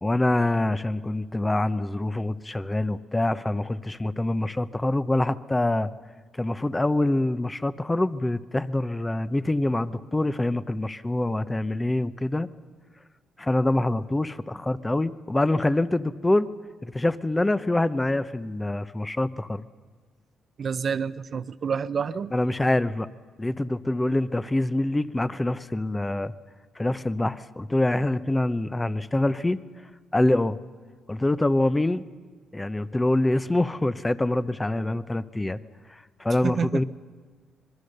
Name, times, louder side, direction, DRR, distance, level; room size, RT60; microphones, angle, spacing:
voice 1, 0.0-5.9 6.4-12.5 13.4-16.5 16.8-19.7 22.3-23.1 23.4-26.3 26.8-29.6 30.1-30.6 31.1-32.0 32.5-35.6 35.9-36.8, left 1 dB, 15° left, 14 dB, 0.8 m, -25 dB
voice 2, 20.6-22.3 36.4-36.8, right 6 dB, 50° right, 14 dB, 0.7 m, -28 dB
26.0 x 21.0 x 6.7 m, 1.5 s
cardioid pair, 90°, 0 cm